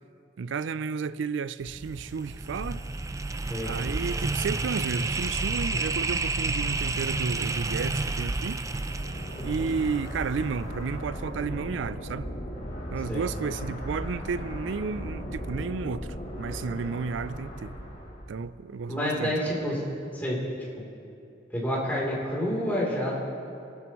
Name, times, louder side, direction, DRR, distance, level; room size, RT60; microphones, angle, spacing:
voice 1, 0.4-2.8 3.6-8.6 9.4-12.3 12.9-16.1 16.4-17.8 18.3-19.3, right 5 dB, 85° right, 0.4 m, -32 dB
sound 1, 1.6-10.7, right 3 dB, 20° right, 0.4 m, -30 dB
sound 2, 8.6-18.4, equal, 45° left, 2.4 m, -37 dB
voice 2, 9.4-9.7 13.1-13.3 18.9-19.8 20.1-20.4 20.8-20.9 21.5-23.1, equal, 10° left, 3.3 m, -29 dB
22.5 x 12.0 x 3.1 m
head